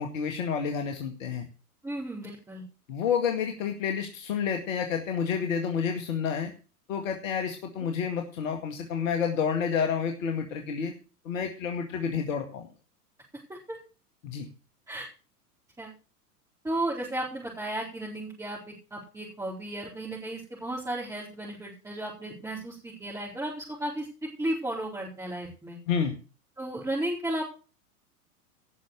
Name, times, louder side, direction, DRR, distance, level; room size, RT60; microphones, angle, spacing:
voice 1, 0.0-1.5 2.9-6.5 6.9-10.9 11.2-12.7 14.2-14.5 25.9-26.2, left 7 dB, 55° left, 4 dB, 2.2 m, -29 dB
voice 2, 1.8-2.6 13.5-13.8 14.9-15.1 15.8-15.9 16.6-24.1 24.4-25.8 26.6-27.4, right 1 dB, 5° right, -5 dB, 4.4 m, -34 dB
17.5 x 6.4 x 6.8 m, 0.35 s
figure-of-eight pair, 95°, 47 cm